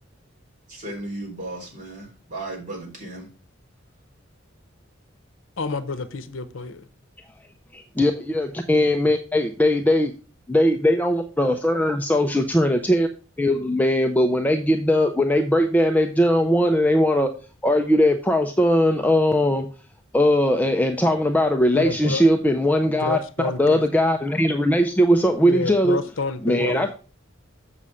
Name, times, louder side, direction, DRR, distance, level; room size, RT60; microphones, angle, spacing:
voice 1, 0.7-3.3, right 2 dB, 40° right, 3.8 m, -35 dB
voice 2, 5.6-6.9 21.7-22.2 23.0-23.8 25.5-26.9, left 4 dB, 75° left, 0.8 m, -29 dB
voice 3, 7.7-10.1 10.5-13.1 13.4-17.3 17.6-19.7 20.1-23.2 23.6-26.0 26.4-26.9, equal, 10° left, 0.5 m, -20 dB
7.4 x 5.6 x 4.9 m
head